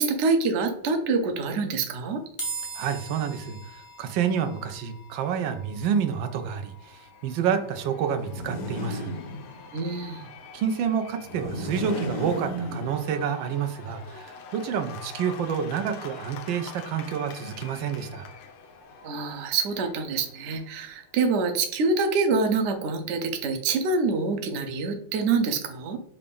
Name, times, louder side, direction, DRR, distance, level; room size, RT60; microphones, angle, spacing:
voice 1, 0.0-2.2 9.7-10.2 19.0-26.0, right 4 dB, 65° right, 6 dB, 0.7 m, -26 dB
sound 1, 2.4-15.7, right 3 dB, 20° left, 0.5 m, -45 dB
voice 2, 2.7-9.1 10.5-18.2, right 7 dB, 90° right, 7 dB, 1.4 m, -29 dB
Cheering / Applause / Crowd, 6.4-21.1, left 5 dB, 80° left, 1.4 m, -46 dB
sound 2, 8.1-9.9 11.2-13.4, left 1 dB, 60° left, 0.9 m, -34 dB
5.6 x 2.5 x 3.5 m, 0.69 s
omnidirectional pair, 2.0 m